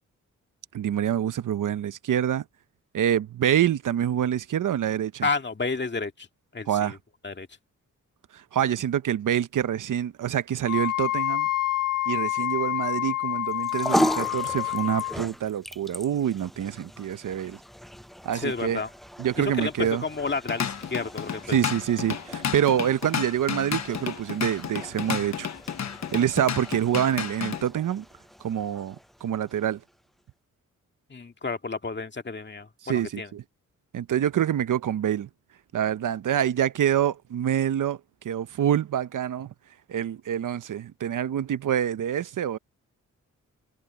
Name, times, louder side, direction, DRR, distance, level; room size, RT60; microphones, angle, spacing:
voice 1, 0.7-2.4 2.9-5.3 6.7-7.0 8.3-11.5 12.1-17.6 18.2-18.8 19.2-20.0 21.5-25.5 26.1-28.0 28.4-29.0 29.2-29.8 32.8-33.4 33.9-35.3 35.7-38.0 38.2-39.5 39.9-42.6, right 10 dB, 75° right, 0.9 m, -26 dB
voice 2, 5.2-6.3 6.5-7.0 7.2-7.5 18.3-18.9 19.4-21.6 31.1-33.3, left 4 dB, 35° left, 2.1 m, -31 dB
Wind instrument woodwind instrument, 10.6-15.2, left 14 dB, 85° left, 1.3 m, -28 dB
sound 1, 13.5-30.0, equal, ahead, 0.5 m, -36 dB
Drum kit / Drum, 20.3-27.6, left 8 dB, 60° left, 1.1 m, -32 dB
cardioid pair, 55°, 31 cm